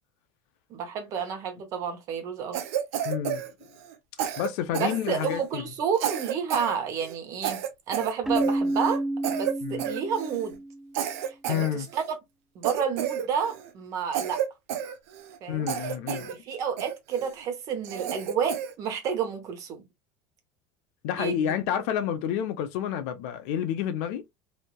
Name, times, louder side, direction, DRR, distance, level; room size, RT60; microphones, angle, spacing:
voice 1, 0.7-2.6 4.2-4.3 4.7-7.6 7.9-10.6 11.3-12.2 12.5-14.4 15.4-19.8 21.2-21.5, right 7 dB, 50° right, 1.1 m, -30 dB
Cough, 2.5-5.5 5.9-6.7 7.0-7.1 7.4-9.0 9.2-9.5 9.8-10.5 10.9-12.1 12.6-13.7 14.1-15.4 15.7-16.3 16.8-17.3 17.8-18.7, right 9 dB, 80° right, 0.7 m, -31 dB
voice 2, 3.0-3.5 4.4-5.6 9.6-9.8 11.5-11.9 15.5-16.3 21.0-24.2, left 9 dB, 70° left, 0.6 m, -29 dB
Keyboard (musical), 8.3-10.9, right 1 dB, 5° right, 0.3 m, -29 dB
3.2 x 2.7 x 2.3 m
supercardioid pair, 125°, 7 cm